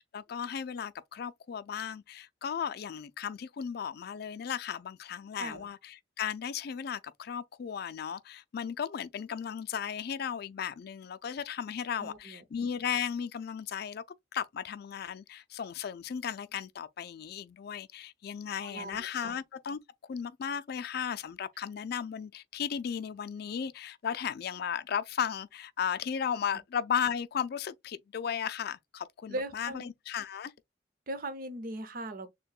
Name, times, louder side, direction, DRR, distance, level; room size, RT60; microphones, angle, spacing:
voice 1, 0.1-14.0 14.3-19.8 20.1-30.5, left 8 dB, 60° left, 0.4 m, -35 dB
voice 2, 12.0-12.4 18.6-19.4 29.3-29.9 31.1-32.3, right 1 dB, 50° right, 0.7 m, -39 dB
6.5 x 2.2 x 2.3 m
head